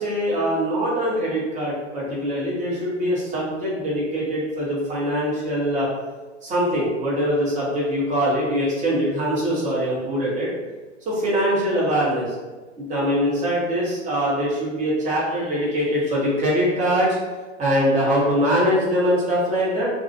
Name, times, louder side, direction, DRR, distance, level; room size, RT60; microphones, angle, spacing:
voice 1, 0.0-5.9 6.4-10.5 11.1-12.4 12.8-17.2 17.6-19.9, equal, 20° right, -6 dB, 0.8 m, -23 dB
2.3 x 2.0 x 2.7 m, 1.2 s
hypercardioid pair, 115°, 37 cm